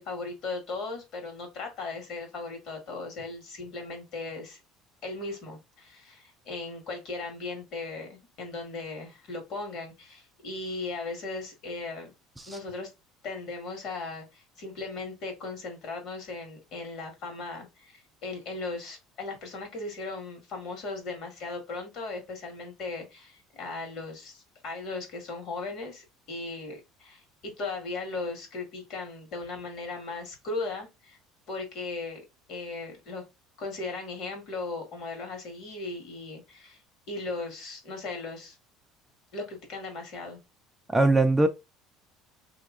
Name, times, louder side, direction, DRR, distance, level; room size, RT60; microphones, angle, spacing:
voice 1, 0.0-4.6 5.0-12.1 12.5-12.9 13.2-31.2 31.5-33.2 33.6-36.8 37.1-38.6 39.3-40.4, left 3 dB, 55° left, 1.6 m, -37 dB
voice 2, 40.9-41.5, right 2 dB, 10° right, 0.4 m, -21 dB
2.9 x 2.8 x 3.7 m
cardioid pair, 140°, 0 cm